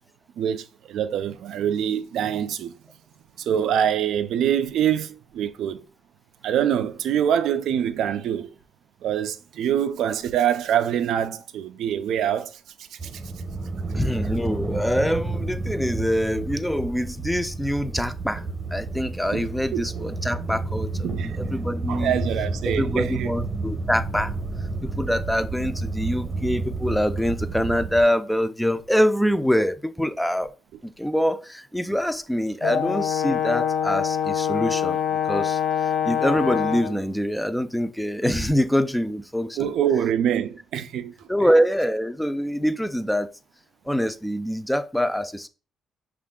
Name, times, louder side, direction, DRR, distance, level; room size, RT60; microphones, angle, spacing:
voice 1, 0.4-2.7 3.4-5.8 6.4-8.5 9.0-12.6 12.9-13.2 19.3-19.4 19.7-19.9 21.0-21.4 21.9-23.3 39.6-41.1, right 9 dB, 75° right, 0.4 m, -25 dB
sound 1, 13.0-28.0, right 3 dB, 35° right, 0.8 m, -30 dB
voice 2, 13.9-18.4 18.7-20.9 21.2-22.1 22.6-24.3 25.0-30.5 30.8-35.0 35.2-35.6 36.0-39.7 41.3-43.3 43.9-45.5, equal, 5° left, 0.4 m, -24 dB
Brass instrument, 32.6-37.0, left 9 dB, 80° left, 0.5 m, -24 dB
5.4 x 2.5 x 3.6 m
cardioid pair, 90°, 0 cm